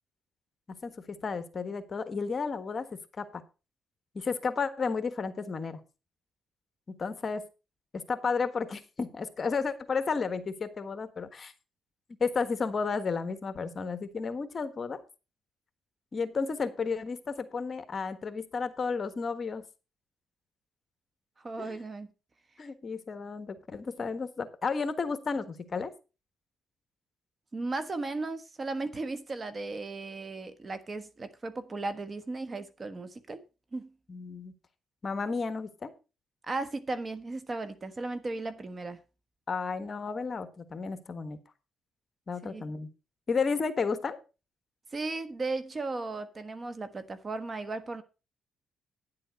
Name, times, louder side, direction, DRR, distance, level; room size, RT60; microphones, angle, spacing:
voice 1, 0.8-2.8 3.2-3.4 4.1-5.8 6.9-7.4 7.9-11.5 12.2-15.0 16.1-19.6 21.6-21.8 22.6-25.9 34.1-34.5 35.0-35.9 39.5-41.4 42.3-42.9 43.3-44.2, left 5 dB, 40° left, 1.4 m, -32 dB
voice 2, 21.4-22.1 27.5-33.4 33.7-33.9 36.4-39.0 42.4-42.6 44.9-48.0, right 3 dB, 30° right, 1.3 m, -36 dB
10.5 x 7.6 x 5.4 m
cardioid pair, 90°, 0 cm